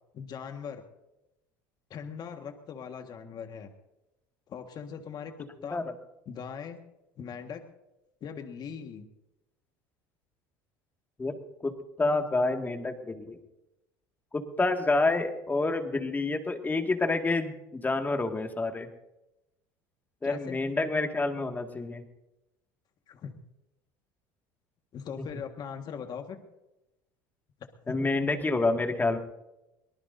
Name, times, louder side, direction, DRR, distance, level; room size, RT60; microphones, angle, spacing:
voice 1, 0.1-0.9 1.9-3.7 4.5-5.9 6.3-6.8 7.2-7.6 8.2-9.1 20.2-20.6 23.1-23.3 24.9-26.4 27.9-28.0, left 7 dB, 45° left, 5 dB, 1.6 m, -40 dB
voice 2, 12.0-13.4 14.3-18.9 20.2-22.0 27.9-29.2, left 3 dB, 20° left, 5 dB, 2.0 m, -28 dB
23.0 x 19.0 x 2.7 m, 0.94 s
hypercardioid pair, 85°, 10 cm